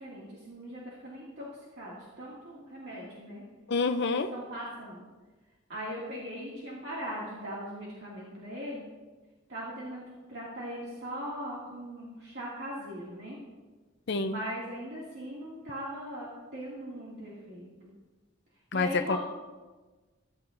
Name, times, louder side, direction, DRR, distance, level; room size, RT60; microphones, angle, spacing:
voice 1, 0.0-1.5 1.7-3.4 4.1-5.1 5.7-8.9 9.5-13.4 14.3-17.7 18.7-19.2, equal, 55° right, -6 dB, 2.4 m, -40 dB
voice 2, 3.7-4.3 14.1-14.4 18.7-19.2, left 3 dB, 60° left, 7 dB, 0.6 m, -27 dB
15.0 x 13.0 x 2.6 m, 1.3 s
head